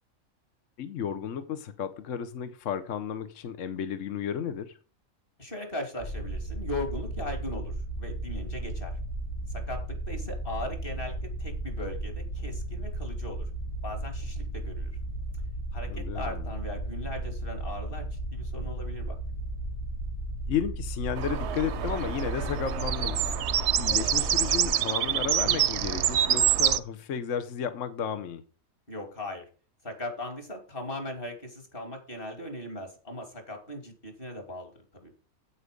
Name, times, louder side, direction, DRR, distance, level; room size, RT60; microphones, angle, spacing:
voice 1, 0.8-4.7 15.9-16.5 20.5-23.2 23.8-28.4, left 8 dB, 65° left, 1.2 m, -33 dB
voice 2, 5.4-8.9 9.5-11.1 11.4-13.4 13.8-14.9 15.7-19.1 28.9-29.5 29.8-35.1, left 1 dB, 40° left, 3.0 m, -38 dB
sound 1, 6.0-24.7, right 1 dB, 85° left, 4.7 m, -35 dB
sound 2, 21.2-26.8, right 10 dB, 60° right, 0.8 m, -26 dB
8.9 x 8.5 x 5.2 m
omnidirectional pair, 1.5 m